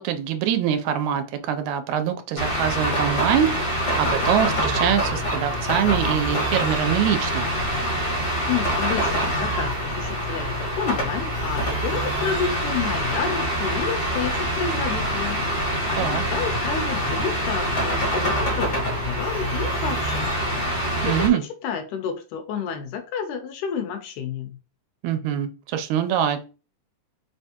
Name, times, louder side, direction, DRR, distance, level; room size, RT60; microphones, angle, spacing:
voice 1, 0.0-7.5 16.0-16.2 21.0-21.4 25.0-26.4, right 9 dB, 80° right, 8 dB, 2.0 m, -24 dB
sound 1, 2.4-21.3, equal, 50° left, 2.4 m, -25 dB
voice 2, 8.5-15.6 15.9-20.3 20.7-21.3 21.6-24.6, left 7 dB, 85° left, 7 dB, 2.1 m, -30 dB
4.9 x 3.4 x 2.8 m, 0.33 s
omnidirectional pair, 3.5 m